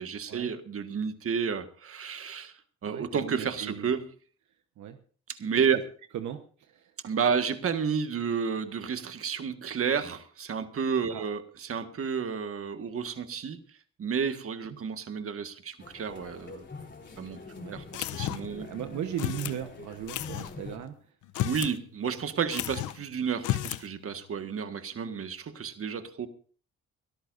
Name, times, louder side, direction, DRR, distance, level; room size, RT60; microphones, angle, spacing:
voice 1, 0.0-2.5 2.8-4.1 5.3-5.8 7.0-13.6 14.0-16.6 17.2-17.4 17.7-18.7 21.4-26.3, right 6 dB, 50° right, 8 dB, 1.7 m, -31 dB
voice 2, 2.9-3.9 4.8-5.0 6.1-6.4 6.7-6.8 11.1-11.2 17.6-17.8 18.6-20.9, right 10 dB, 75° right, 7 dB, 1.2 m, -37 dB
sound 1, 15.8-20.8, left 4 dB, 35° left, 3.6 m, -45 dB
sound 2, 17.9-18.6 19.2-19.6 20.1-20.5 21.2-21.8 22.0-22.1 22.5-23.0 23.4-23.9, left 14 dB, 80° left, 0.7 m, -32 dB
23.0 x 13.5 x 2.6 m, 0.42 s
cardioid pair, 90°, 30 cm